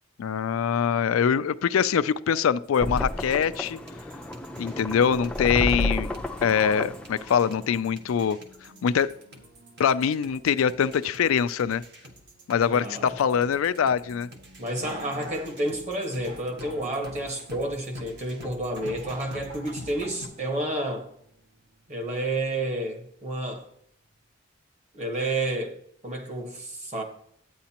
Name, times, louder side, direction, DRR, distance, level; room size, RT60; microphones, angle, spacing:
voice 1, 0.2-3.8 4.6-8.4 8.8-9.1 9.8-11.8 12.5-14.3, left 7 dB, 90° left, 0.4 m, -24 dB
sound 1, 2.6-20.3, equal, 55° right, 1.4 m, -48 dB
sound 2, 2.8-7.8, left 1 dB, 5° left, 0.5 m, -31 dB
voice 2, 12.6-13.2 14.6-21.1 21.9-23.7 24.9-25.8 26.0-27.0, right 1 dB, 35° right, 1.5 m, -30 dB
sound 3, 14.8-22.9 23.4-23.5, right 1 dB, 70° right, 1.0 m, -47 dB
11.5 x 9.0 x 2.9 m
head